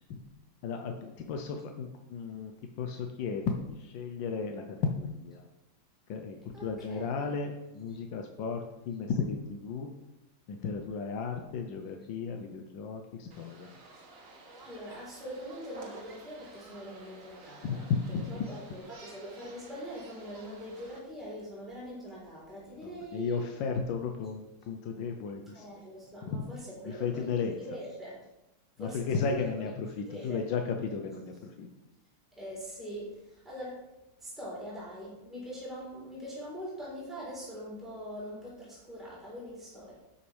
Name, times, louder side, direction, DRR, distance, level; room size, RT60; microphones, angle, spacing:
voice 1, 0.6-2.5 2.8-5.4 6.1-6.4 6.6-9.9 10.5-13.7 17.6-18.4 22.8-25.7 26.3-26.4 26.8-27.8 28.8-31.7, left 5 dB, 80° left, 3 dB, 1.6 m, -34 dB
voice 2, 6.5-7.4 7.9-8.0 14.6-17.9 18.3-23.4 25.5-27.4 27.6-28.2 28.8-29.7 30.0-30.4 32.4-33.8 34.2-40.0, equal, ahead, -8 dB, 4.0 m, -43 dB
sound 1, 13.3-21.0, right 3 dB, 50° right, 1.7 m, -52 dB
11.5 x 8.1 x 3.5 m, 0.93 s
omnidirectional pair, 2.0 m